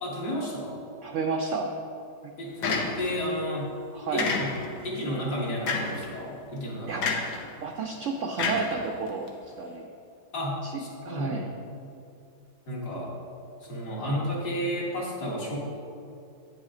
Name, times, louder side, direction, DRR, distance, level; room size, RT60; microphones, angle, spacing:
voice 1, 0.0-0.8 2.4-3.7 4.1-4.6 4.8-7.0 10.3-11.4 12.7-13.1 13.6-15.6, equal, 65° left, -4 dB, 2.3 m, -32 dB
voice 2, 1.0-1.7 3.9-4.3 6.9-7.0 7.6-9.3 9.6-9.9 10.6-11.5, right 4 dB, 85° right, 3 dB, 0.6 m, -31 dB
sound 1, 2.6-3.3 4.2-4.8 5.7-6.1 7.0-7.4 8.4-9.3, left 4 dB, 85° left, 1.6 m, -29 dB
9.1 x 7.3 x 3.8 m, 2.6 s
omnidirectional pair, 1.9 m